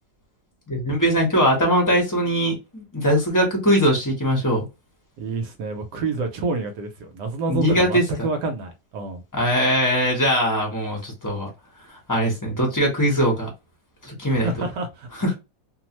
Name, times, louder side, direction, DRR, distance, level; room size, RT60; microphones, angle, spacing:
voice 1, 0.7-4.6 7.5-8.0 9.3-11.5 12.1-13.5 14.0-14.5 15.2-15.3, equal, 15° left, 0.7 m, -21 dB
voice 2, 5.2-9.2 14.3-15.1, right 3 dB, 75° right, 1.2 m, -28 dB
3.1 x 2.0 x 2.9 m
omnidirectional pair, 1.9 m